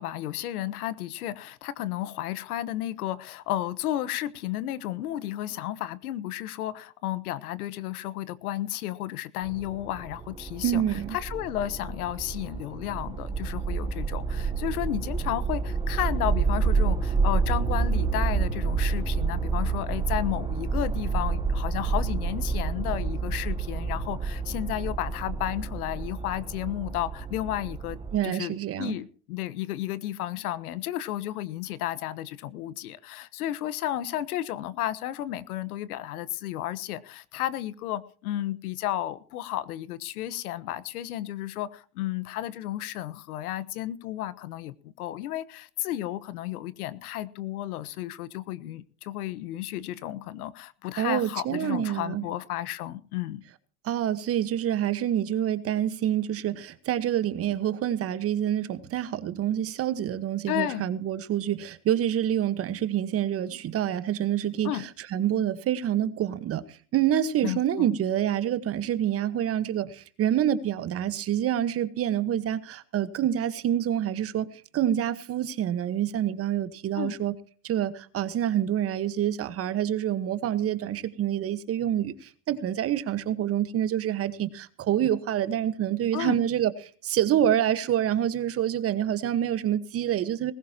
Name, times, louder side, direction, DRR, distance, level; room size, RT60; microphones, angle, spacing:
voice 1, 0.0-28.0 28.2-53.4 60.5-60.9 64.6-64.8 67.4-67.9 76.9-77.2 86.1-86.4, left 13 dB, 90° left, 1.2 m, -33 dB
sound 1, 9.4-28.2, right 4 dB, 10° right, 1.0 m, -29 dB
voice 2, 10.6-11.2 28.1-29.0 51.0-52.2 53.8-77.3 77.6-86.7 87.0-90.5, right 10 dB, 30° right, 1.3 m, -27 dB
19.5 x 16.0 x 2.9 m
supercardioid pair, 135°, 43 cm